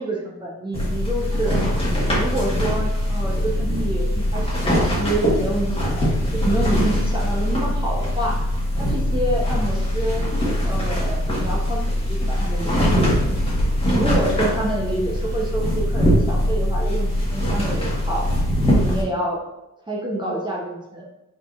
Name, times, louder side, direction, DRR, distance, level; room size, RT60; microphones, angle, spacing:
voice 1, 0.0-1.6 2.1-8.5 8.8-13.1 13.9-18.2 18.7-19.4 19.9-21.0, right 1 dB, 15° right, -4 dB, 0.7 m, -27 dB
sound 1, 0.7-19.0, equal, 20° left, 1.3 m, -22 dB
4.3 x 3.9 x 2.4 m, 0.93 s
cardioid pair, 95°, 31 cm